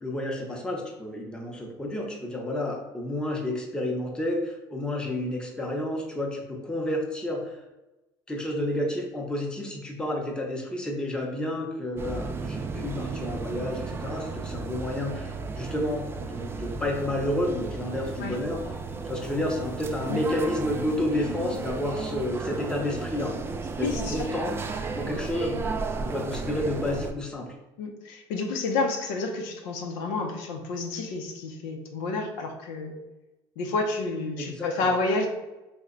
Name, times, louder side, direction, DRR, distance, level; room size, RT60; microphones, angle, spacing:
voice 1, 0.0-7.6 8.3-18.6 19.0-23.3 23.7-24.6 24.9-25.6 26.0-27.5 34.4-34.9, left 1 dB, 10° left, 0 dB, 0.7 m, -30 dB
sound 1, 11.9-27.1, right 4 dB, 25° right, 0.3 m, -34 dB
voice 2, 23.8-24.3 27.8-33.0 33.6-35.3, left 3 dB, 90° left, 3 dB, 0.6 m, -30 dB
3.2 x 2.1 x 3.7 m, 1.0 s
supercardioid pair, 105°, 10 cm